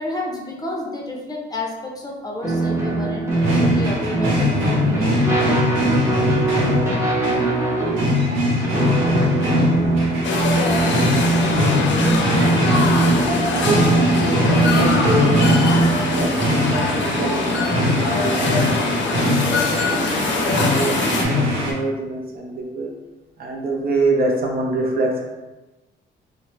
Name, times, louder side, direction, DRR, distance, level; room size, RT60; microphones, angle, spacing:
voice 1, 0.0-3.3 3.6-5.6, left 2 dB, 20° left, -2 dB, 0.6 m, -30 dB
sound 1, 2.4-16.3, right 2 dB, 15° right, 0.9 m, -21 dB
sound 2, 3.3-21.7, left 1 dB, 90° right, 0.8 m, -22 dB
sound 3, 10.2-21.2, left 3 dB, 65° left, 0.6 m, -23 dB
voice 2, 13.6-13.9 14.2-15.4 16.1-18.8 19.4-22.9 23.4-25.3, right 2 dB, 50° right, 0 dB, 0.6 m, -25 dB
3.0 x 2.0 x 3.0 m, 1.1 s
cardioid pair, 90°, 20 cm